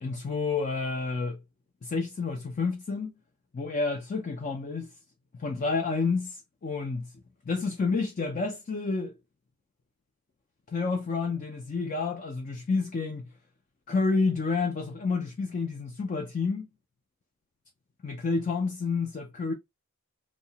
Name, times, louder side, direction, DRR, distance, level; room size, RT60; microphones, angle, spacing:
voice 1, 0.0-1.4 1.8-3.2 3.5-4.9 5.3-7.1 7.5-9.2 10.7-13.2 13.9-16.7 18.0-19.5, left 4 dB, 35° left, 0.3 m, -29 dB
2.7 x 2.1 x 2.7 m
head